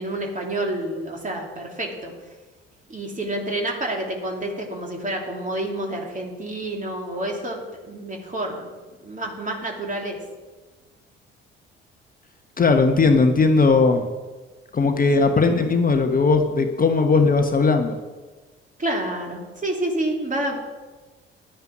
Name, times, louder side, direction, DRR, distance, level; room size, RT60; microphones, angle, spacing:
voice 1, 0.0-2.1 2.9-7.6 7.9-8.7 9.0-10.2 15.2-15.4 18.8-20.6, right 1 dB, 25° right, 1 dB, 3.0 m, -28 dB
voice 2, 12.6-14.0 14.7-18.0, left 4 dB, 30° left, 5 dB, 1.2 m, -18 dB
11.5 x 9.5 x 6.1 m, 1.3 s
figure-of-eight pair, 50°, 30 cm